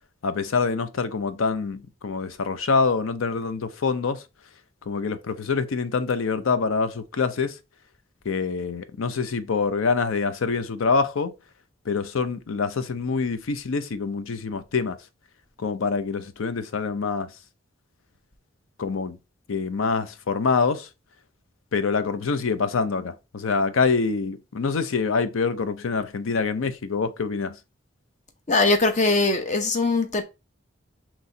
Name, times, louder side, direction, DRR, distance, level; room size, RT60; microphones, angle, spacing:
voice 1, 0.2-4.2 4.9-7.6 8.2-11.3 11.9-15.0 15.6-17.3 18.8-19.2 19.5-20.9 21.7-27.6, left 4 dB, 85° left, 0.5 m, -25 dB
voice 2, 28.5-30.2, left 3 dB, 35° left, 0.7 m, -21 dB
4.2 x 3.1 x 3.7 m
head